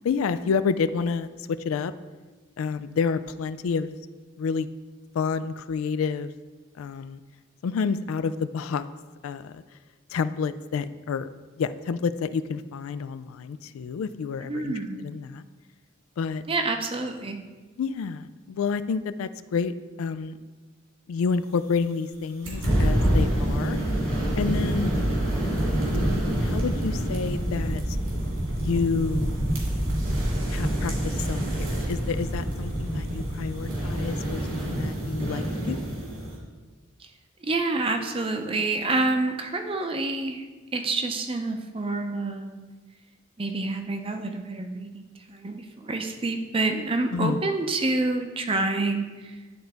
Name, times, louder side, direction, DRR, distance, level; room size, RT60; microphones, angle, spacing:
voice 1, 0.0-1.9 2.6-3.9 4.4-4.7 5.1-6.3 6.8-7.2 7.6-8.8 9.2-9.6 10.1-11.3 11.6-15.4 16.2-16.4 17.8-20.4 21.1-23.8 24.4-25.0 26.4-27.8 28.5-29.4 30.5-35.8 47.1-47.5, left 5 dB, 85° left, 13 dB, 0.3 m, -29 dB
voice 2, 14.4-15.1 16.5-17.4 37.4-40.5 40.7-42.7 43.4-49.3, right 2 dB, 25° right, 6 dB, 0.5 m, -28 dB
sound 1, 22.4-36.4, right 1 dB, 85° right, 2.3 m, -26 dB
11.0 x 3.9 x 3.4 m, 1.3 s
head